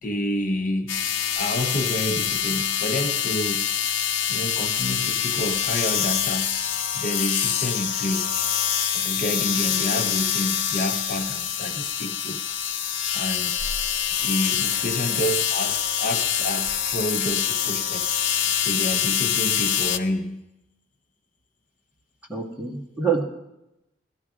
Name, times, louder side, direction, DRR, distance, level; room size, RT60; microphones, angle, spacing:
voice 1, 0.0-1.0 1.4-3.7 4.3-6.7 6.9-8.3 8.9-12.4 13.1-13.6 14.2-18.1 18.6-20.4, left 1 dB, 45° left, 5 dB, 0.7 m, -29 dB
sound 1, 0.9-20.0, left 9 dB, 75° left, 0.7 m, -25 dB
voice 2, 22.3-23.2, right 5 dB, 5° right, -2 dB, 1.6 m, -26 dB
17.0 x 13.0 x 4.9 m, 0.91 s
head